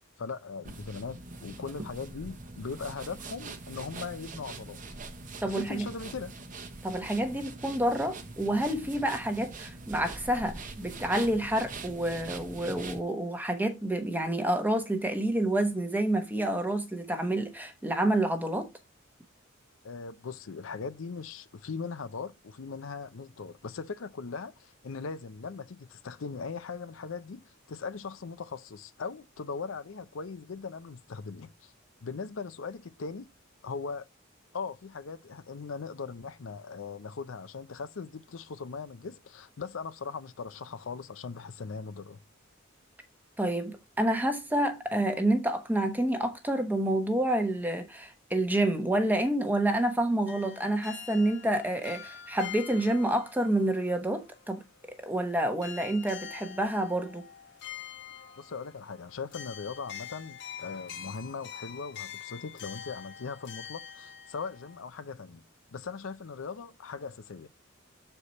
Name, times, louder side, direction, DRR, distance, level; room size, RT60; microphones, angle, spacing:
voice 1, 0.2-4.8 5.5-6.3 19.8-31.7 32.0-33.3 33.6-34.0 34.5-42.2 58.4-65.4 65.7-67.5, left 5 dB, 80° left, 0.6 m, -39 dB
sound 1, 0.6-13.0, right 3 dB, 40° right, 0.9 m, -43 dB
voice 2, 5.4-5.9 6.8-18.7 43.4-57.3, right 1 dB, 10° right, 1.0 m, -28 dB
sound 2, 50.3-55.3 55.6-64.8, left 8 dB, 60° left, 1.4 m, -45 dB
6.7 x 4.5 x 4.1 m
head